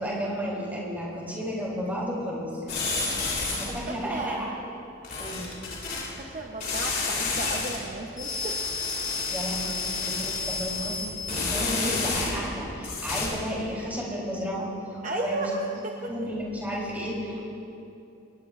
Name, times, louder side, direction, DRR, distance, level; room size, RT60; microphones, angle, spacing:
voice 1, 0.0-2.8 3.6-4.5 5.2-5.5 9.3-14.7 15.1-15.4 16.1-17.4, equal, 10° right, -5 dB, 3.7 m, -32 dB
sound 1, 2.7-3.8 5.0-6.1 6.6-7.8 8.2-12.5 12.8-13.3, left 3 dB, 45° left, 3.5 m, -30 dB
voice 2, 3.1-3.4 3.7-4.5 6.3-8.6 9.6-9.7 11.6-11.9 15.0-16.3, right 2 dB, 40° right, 0 dB, 0.9 m, -34 dB
23.0 x 19.5 x 2.6 m, 2.7 s
head